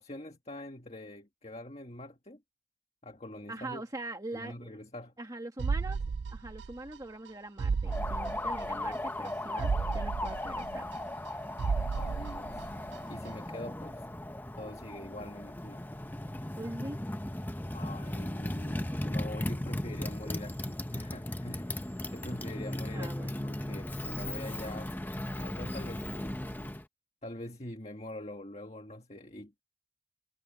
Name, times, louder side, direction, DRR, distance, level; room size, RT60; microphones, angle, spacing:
voice 1, 0.0-2.4 3.0-3.8 4.3-5.1 12.0-12.7 13.1-14.3 14.6-15.9 17.7-24.9 25.3-26.4 27.2-29.6, left 1 dB, 35° left, 1.7 m, -44 dB
voice 2, 3.5-4.7 5.2-6.0 6.3-10.9 16.6-17.0 22.9-23.4, right 2 dB, 20° right, 1.5 m, -42 dB
sound 1, 5.6-7.0 7.3-7.4 7.6-9.0 9.3-9.4 9.6-11.3 11.6-13.0 13.3-13.4, right 5 dB, 70° right, 0.4 m, -33 dB
Motorcycle, 7.9-26.8, left 1 dB, 10° left, 0.8 m, -37 dB
head